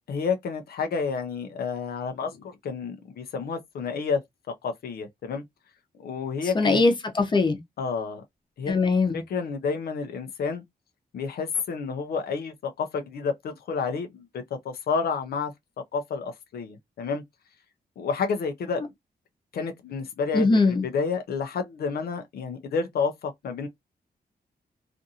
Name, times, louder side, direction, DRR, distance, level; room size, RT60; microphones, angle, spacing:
voice 1, 0.1-4.2 4.5-5.4 6.0-6.8 7.8-8.2 8.6-8.8 9.1-10.6 11.1-15.5 15.9-17.2 18.0-18.9 19.5-23.7, left 5 dB, 75° left, 0.5 m, -30 dB
voice 2, 6.5-7.6 8.7-9.2 20.3-20.8, left 3 dB, 30° left, 0.7 m, -21 dB
2.5 x 2.4 x 2.7 m
wide cardioid pair, 160°, 16 cm